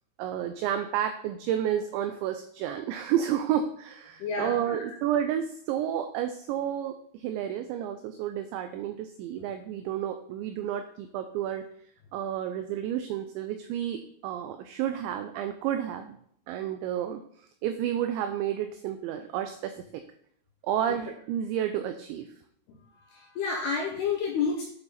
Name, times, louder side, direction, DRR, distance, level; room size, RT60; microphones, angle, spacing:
voice 1, 0.2-11.6 12.1-16.2 16.5-17.2 17.6-20.0 20.6-22.3, right 10 dB, 85° right, 8 dB, 2.6 m, -31 dB
voice 2, 4.2-4.8 23.1-24.6, left 5 dB, 80° left, 1 dB, 2.4 m, -29 dB
9.1 x 6.8 x 4.1 m, 0.66 s
omnidirectional pair, 5.8 m